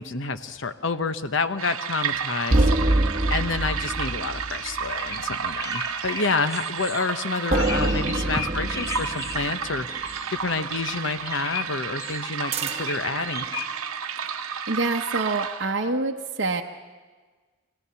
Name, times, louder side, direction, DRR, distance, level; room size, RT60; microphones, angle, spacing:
voice 1, 0.0-13.5, left 4 dB, 65° left, 10 dB, 0.9 m, -29 dB
sound 1, 1.6-15.9, right 7 dB, 90° right, 1.0 m, -32 dB
sound 2, 2.5-5.3 7.5-10.2 12.5-13.1, right 1 dB, 30° right, 1.0 m, -26 dB
sound 3, 3.8-3.9 4.7-4.8 5.0-5.2 5.5-9.6 9.9-10.3 10.7-12.3 12.7-13.7, left 4 dB, 15° left, 0.9 m, -36 dB
voice 2, 14.7-16.6, right 3 dB, 55° right, 1 dB, 0.8 m, -26 dB
24.5 x 17.0 x 7.0 m, 1.4 s
head